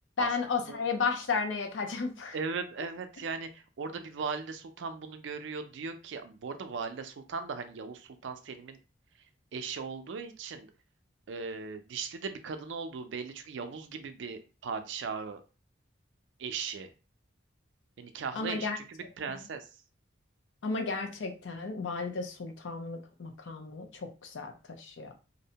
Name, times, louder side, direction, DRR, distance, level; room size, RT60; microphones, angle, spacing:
voice 1, 0.2-2.3 18.4-18.8 20.6-24.5 24.8-25.1, left 4 dB, 80° left, 5 dB, 0.5 m, -33 dB
voice 2, 2.3-8.8 9.5-10.7 11.3-15.4 16.4-16.9 18.0-19.7, right 5 dB, 75° right, 8 dB, 0.4 m, -38 dB
2.6 x 2.1 x 2.8 m, 0.32 s
head